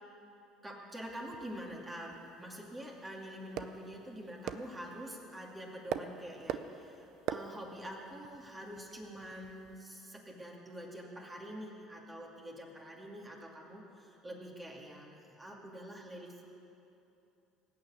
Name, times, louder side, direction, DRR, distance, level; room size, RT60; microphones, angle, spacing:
voice 1, 0.6-16.5, equal, 20° right, -2 dB, 2.4 m, -46 dB
sound 1, 1.0-9.9, right 9 dB, 60° right, 0.6 m, -45 dB
18.0 x 6.8 x 8.3 m, 2.9 s
hypercardioid pair, 80°, 0 cm